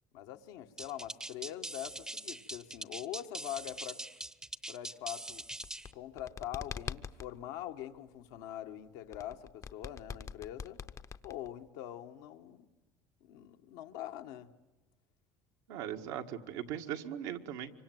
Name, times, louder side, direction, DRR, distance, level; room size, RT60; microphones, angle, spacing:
voice 1, 0.1-4.0 4.7-5.4 5.9-10.8 11.2-12.7 13.2-14.5, left 12 dB, 80° left, 5 dB, 1.6 m, -43 dB
sound 1, 0.8-5.9, right 1 dB, 5° right, 0.8 m, -42 dB
sound 2, 5.5-7.3 9.1-11.7, left 7 dB, 35° left, 0.8 m, -43 dB
voice 2, 15.7-17.7, right 10 dB, 80° right, 4 dB, 1.9 m, -39 dB
25.5 x 24.5 x 9.3 m, 1.1 s
supercardioid pair, 100°, 9 cm